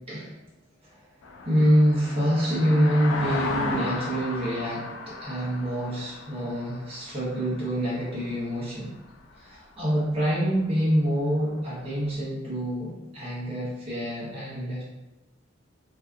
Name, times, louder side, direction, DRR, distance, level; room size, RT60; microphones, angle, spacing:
sound 1, 1.2-8.6 9.1-9.3, left 3 dB, 85° left, 0.4 m, -35 dB
voice 1, 1.4-8.9 9.3-14.8, equal, 30° right, -9 dB, 1.0 m, -26 dB
2.7 x 2.3 x 2.4 m, 1.0 s
head